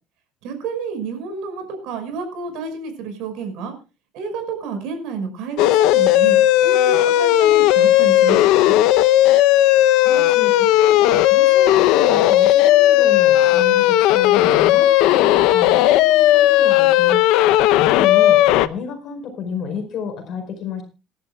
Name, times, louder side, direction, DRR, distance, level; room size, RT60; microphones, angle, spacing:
voice 1, 0.4-3.7 4.1-8.8, right 5 dB, 70° right, 7 dB, 5.5 m, -30 dB
sound 1, 5.6-18.7, left 14 dB, 75° left, 0.7 m, -15 dB
voice 2, 9.6-20.8, left 6 dB, 45° left, 5 dB, 4.9 m, -31 dB
26.5 x 11.5 x 2.3 m, 0.30 s
cardioid pair, 160°, 0 cm